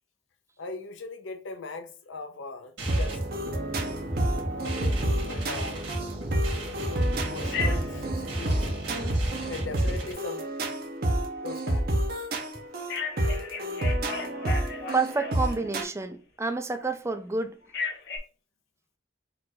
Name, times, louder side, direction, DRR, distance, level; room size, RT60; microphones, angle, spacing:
voice 1, 0.6-3.2 3.5-3.6 4.5-6.2 7.3-8.0 8.3-8.6 9.5-10.5 11.4-11.9, left 3 dB, 90° left, 0.7 m, -39 dB
sound 1, 2.8-10.1, right 1 dB, 75° right, 1.9 m, -34 dB
sound 2, 2.9-15.8, right 1 dB, 55° right, 0.7 m, -29 dB
Telephone, 7.5-8.0 12.9-15.8 17.7-18.2, left 4 dB, 60° left, 1.1 m, -34 dB
voice 2, 14.9-17.6, right 3 dB, 15° right, 0.4 m, -29 dB
4.5 x 2.5 x 3.9 m
head